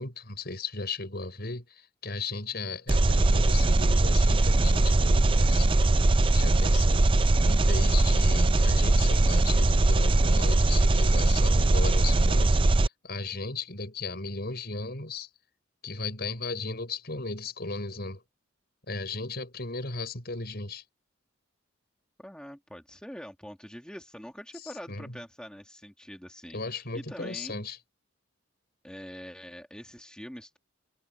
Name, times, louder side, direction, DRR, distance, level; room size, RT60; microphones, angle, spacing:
voice 1, 0.0-5.7 6.3-7.1 7.4-12.6 13.0-15.3 15.8-18.2 18.9-20.8 24.9-25.2 26.5-27.8, left 3 dB, 55° left, 6.4 m, -36 dB
Engine, 2.9-12.9, right 2 dB, 25° right, 0.5 m, -21 dB
voice 2, 7.8-8.2 22.2-27.6 28.8-30.6, equal, 5° left, 2.2 m, -44 dB
head